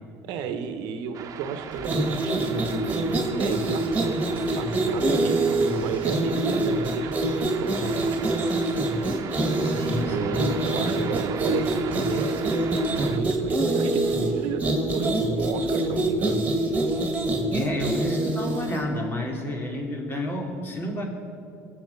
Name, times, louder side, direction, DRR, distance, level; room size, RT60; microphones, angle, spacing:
voice 1, 0.2-8.5 10.1-16.4, right 6 dB, 75° right, 8 dB, 1.1 m, -33 dB
sound 1, 1.1-13.2, right 7 dB, 50° right, 1.2 m, -38 dB
sound 2, 1.8-18.8, right 2 dB, 20° right, 2.5 m, -25 dB
voice 2, 9.6-10.5 17.5-21.1, left 1 dB, 30° left, 1 dB, 2.9 m, -30 dB
21.0 x 7.8 x 5.9 m, 2.5 s
supercardioid pair, 95°, 7 cm